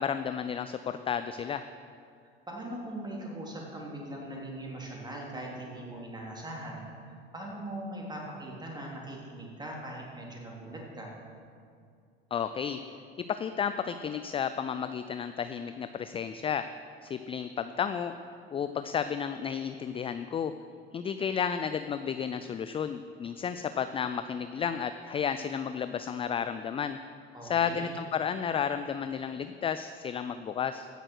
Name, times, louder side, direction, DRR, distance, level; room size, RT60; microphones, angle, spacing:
voice 1, 0.0-1.6 12.3-12.8 13.3-16.7 17.0-18.1 18.5-20.5 20.9-27.0 27.4-30.9, left 7 dB, 20° left, 11 dB, 0.4 m, -32 dB
voice 2, 2.5-11.1 27.3-27.9, right 1 dB, 15° right, -2 dB, 3.4 m, -40 dB
16.0 x 6.5 x 6.2 m, 2.4 s
hypercardioid pair, 85°, 30 cm